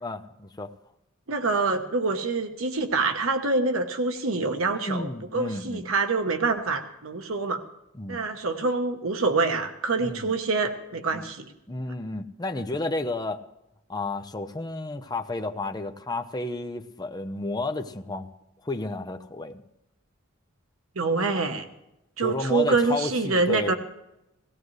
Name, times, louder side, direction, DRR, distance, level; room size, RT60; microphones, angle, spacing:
voice 1, 0.0-0.7 4.7-5.9 7.9-8.2 10.0-10.3 11.1-11.2 11.7-13.4 13.9-18.3 18.6-19.6 22.2-23.7, left 2 dB, 20° left, 0.7 m, -32 dB
voice 2, 1.3-5.1 5.3-7.6 8.1-11.5 21.0-21.7 22.2-23.7, right 3 dB, 80° right, 1.1 m, -26 dB
18.0 x 16.5 x 3.2 m
head